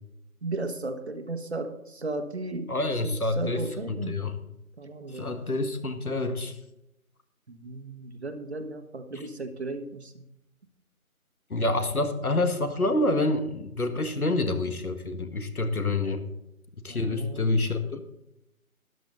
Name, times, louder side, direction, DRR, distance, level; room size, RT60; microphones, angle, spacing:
voice 1, 0.4-2.7 3.0-4.2 4.8-5.3 7.5-10.2 16.9-17.6, right 2 dB, 45° right, 7 dB, 1.4 m, -35 dB
voice 2, 2.7-3.6 3.9-4.3 5.1-6.6 11.5-16.2 16.8-18.0, left 2 dB, 75° left, 8 dB, 1.9 m, -27 dB
13.5 x 11.0 x 3.9 m, 0.85 s
figure-of-eight pair, 160°, 44 cm